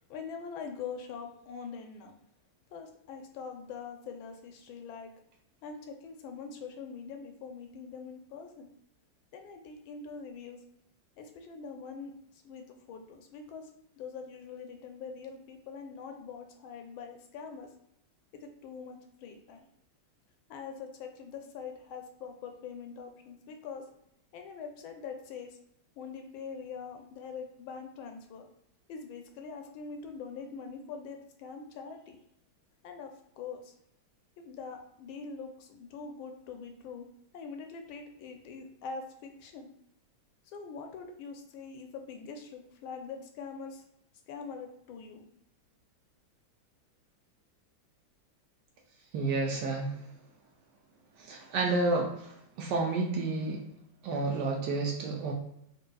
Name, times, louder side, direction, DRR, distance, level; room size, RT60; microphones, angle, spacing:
voice 1, 0.1-2.2 2.7-5.1 5.6-8.7 9.3-10.6 11.2-12.1 12.4-13.7 14.0-17.7 18.4-19.7 20.5-23.8 24.3-25.6 26.0-28.5 28.9-32.2 32.8-33.7 34.4-37.1 37.3-39.7 40.5-43.8 44.3-45.3, left 5 dB, 85° left, 4 dB, 1.4 m, -43 dB
voice 2, 49.1-50.0 51.2-53.6 54.0-55.3, right 3 dB, 70° right, 1 dB, 1.1 m, -30 dB
4.4 x 2.6 x 2.2 m, 0.77 s
omnidirectional pair, 2.2 m